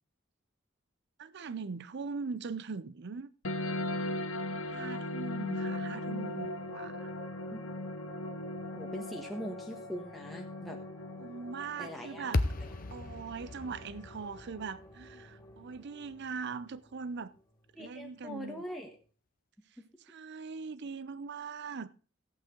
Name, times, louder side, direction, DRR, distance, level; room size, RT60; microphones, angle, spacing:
voice 1, 1.2-3.3 4.7-7.1 11.2-12.5 12.9-17.3 17.8-18.6 20.0-21.9, right 5 dB, 60° right, 0.5 m, -41 dB
sound 1, 3.4-14.4, left 1 dB, 80° left, 0.9 m, -39 dB
sound 2, 5.7-18.5, left 1 dB, 15° left, 1.3 m, -53 dB
voice 2, 8.7-10.8 11.8-12.3 12.6-12.7 17.7-18.9, equal, ahead, 1.2 m, -42 dB
sound 3, 12.3-16.6, left 2 dB, 45° left, 0.8 m, -37 dB
14.5 x 8.3 x 3.7 m
head